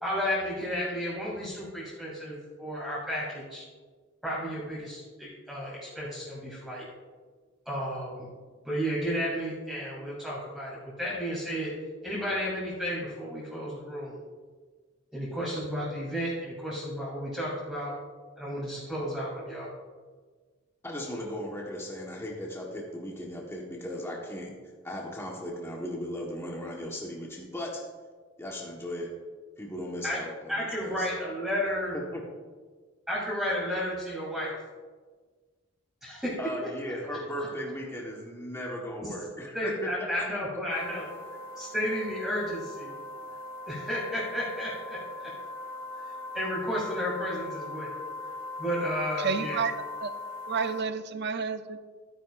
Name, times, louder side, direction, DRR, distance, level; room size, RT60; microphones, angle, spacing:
voice 1, 0.0-3.6 4.2-6.8 7.7-8.3 8.6-11.7 12.0-14.2 15.1-17.9 18.4-19.7 30.0-30.2 30.5-32.0 33.1-34.6 36.0-36.3 37.1-37.2 39.5-41.1 41.6-42.9 43.7-45.0 45.2-45.3 46.3-48.0 48.6-49.7, equal, 5° right, -9 dB, 2.7 m, -32 dB
voice 2, 20.8-24.5 24.8-27.8 28.4-29.1 29.6-31.1 31.9-32.2 36.4-40.1, left 1 dB, 15° left, -3 dB, 1.3 m, -37 dB
sound 1, 40.7-50.8, left 2 dB, 80° right, 3.1 m, -40 dB
voice 3, 49.2-49.7 50.0-50.1 50.5-51.8, right 5 dB, 55° right, 10 dB, 0.6 m, -30 dB
13.0 x 9.5 x 2.5 m, 1.4 s
head